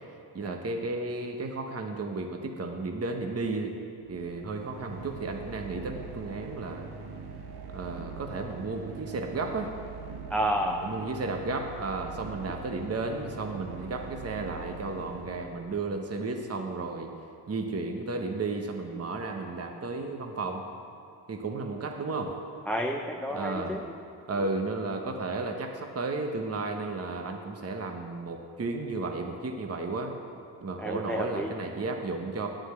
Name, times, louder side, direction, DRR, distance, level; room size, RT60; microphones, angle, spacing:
voice 1, 0.3-3.7 4.1-6.9 7.7-9.7 10.8-17.1 17.5-20.6 21.3-22.4 23.3-23.8 24.3-30.1 30.6-32.5, right 3 dB, 35° right, 3 dB, 1.0 m, -33 dB
sound 1, 4.1-15.9, right 5 dB, 65° right, 1.1 m, -43 dB
voice 2, 10.3-10.9 22.7-23.8 30.8-31.5, equal, 5° left, 2 dB, 0.6 m, -30 dB
9.6 x 6.4 x 7.7 m, 2.5 s
cardioid pair, 65°, 42 cm